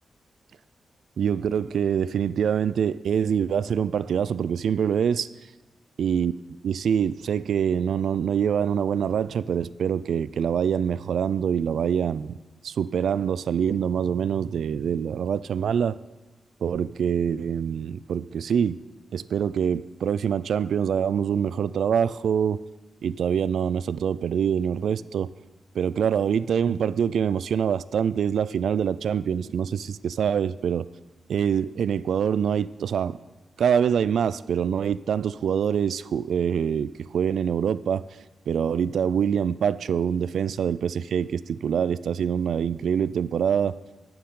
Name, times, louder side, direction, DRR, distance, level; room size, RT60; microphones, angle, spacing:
voice 1, 1.2-5.3 6.0-6.3 6.6-12.4 12.6-16.0 16.6-18.8 19.1-22.6 23.0-25.3 25.7-30.9 31.3-33.2 33.6-38.0 38.5-43.8, right 8 dB, 85° right, 17 dB, 0.3 m, -25 dB
19.0 x 6.9 x 3.8 m, 1.1 s
cardioid pair, 100°, 0 cm